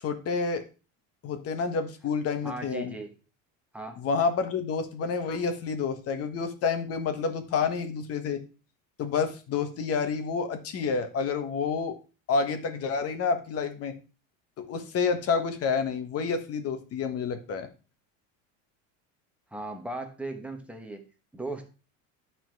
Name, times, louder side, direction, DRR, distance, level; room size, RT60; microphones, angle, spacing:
voice 1, 0.0-0.6 1.2-2.9 4.0-8.4 9.0-12.0 12.3-14.0 14.6-17.7, left 5 dB, 40° left, 8 dB, 1.4 m, -29 dB
voice 2, 2.4-3.1 3.7-4.0 19.5-21.1 21.3-21.7, right 2 dB, 5° right, 4 dB, 1.3 m, -37 dB
11.0 x 4.3 x 4.7 m, 0.34 s
cardioid pair, 135°, 37 cm